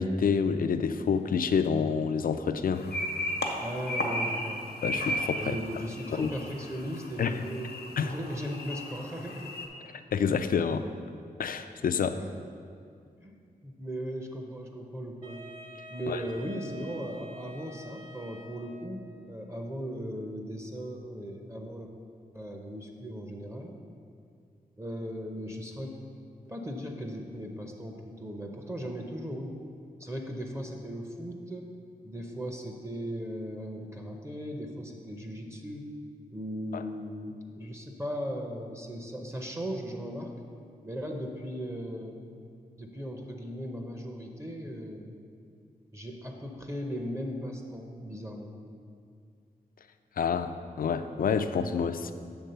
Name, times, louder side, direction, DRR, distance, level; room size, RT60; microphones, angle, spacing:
voice 1, 0.0-2.9 4.8-5.6 6.1-6.3 7.2-7.3 8.0-8.1 9.9-10.9 11.4-12.2 16.1-16.2 36.7-36.8 50.2-50.5 50.8-52.1, left 6 dB, 65° left, 10 dB, 0.4 m, -28 dB
sound 1, 2.7-9.7, equal, 85° left, 0.9 m, -35 dB
voice 2, 3.6-4.6 5.4-9.5 12.2-12.4 13.2-13.4 13.6-15.4 15.9-21.9 22.3-23.7 24.8-25.9 26.4-29.6 30.0-31.7 32.0-35.9 36.3-40.3 40.8-42.2 42.8-45.1 45.9-48.5, equal, 15° right, 2 dB, 0.7 m, -37 dB
Wind instrument woodwind instrument, 15.2-19.1, right 2 dB, 45° right, 1.6 m, -47 dB
8.0 x 3.6 x 6.7 m, 2.3 s
wide cardioid pair, 110°, 16 cm